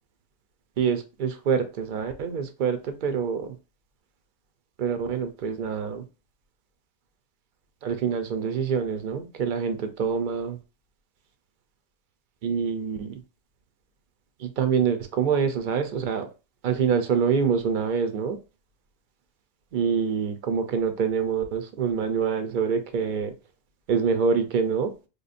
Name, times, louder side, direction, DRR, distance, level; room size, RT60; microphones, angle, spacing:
voice 1, 0.8-3.6 4.8-6.0 7.8-10.6 12.4-13.2 14.4-16.3 16.6-18.4 19.7-23.3 23.9-24.9, right 6 dB, 55° right, 8 dB, 0.7 m, -26 dB
5.1 x 2.2 x 2.5 m, 0.31 s
omnidirectional pair, 1.2 m